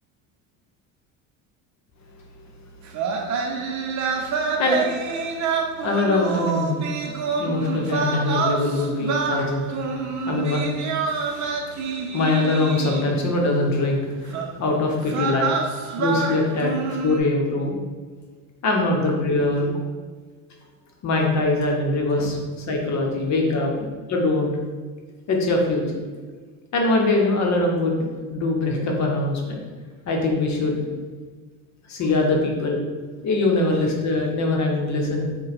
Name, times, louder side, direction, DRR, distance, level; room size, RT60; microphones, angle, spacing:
sound 1, 2.9-13.3 14.3-14.5 15.0-17.2, right 4 dB, 50° right, 0.6 m, -27 dB
voice 1, 4.4-4.9 5.8-6.8 7.0-7.1 7.4-9.7 10.2-10.6 11.3-11.6 12.1-15.5 16.0-17.7 18.6-19.7 21.0-23.7 24.1-24.5 25.3-26.0 26.7-29.7 30.1-30.8 31.9-32.8 33.2-35.3, left 2 dB, 45° left, 0 dB, 0.8 m, -22 dB
3.8 x 2.2 x 4.1 m, 1.5 s
supercardioid pair, 95°, 38 cm